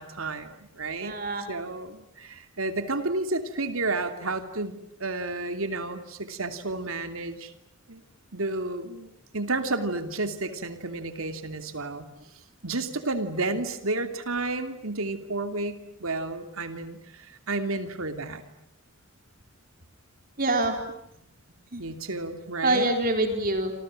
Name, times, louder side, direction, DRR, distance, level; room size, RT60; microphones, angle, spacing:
voice 1, 0.0-1.1 1.5-7.5 7.9-8.0 8.3-9.1 9.3-12.1 12.6-18.4 21.8-22.9, right 2 dB, 75° right, 8 dB, 2.8 m, -31 dB
voice 2, 1.0-1.5 20.4-20.8 21.7-21.8 22.6-23.7, right 2 dB, 40° right, 5 dB, 3.9 m, -25 dB
28.0 x 27.5 x 7.7 m, 0.78 s
head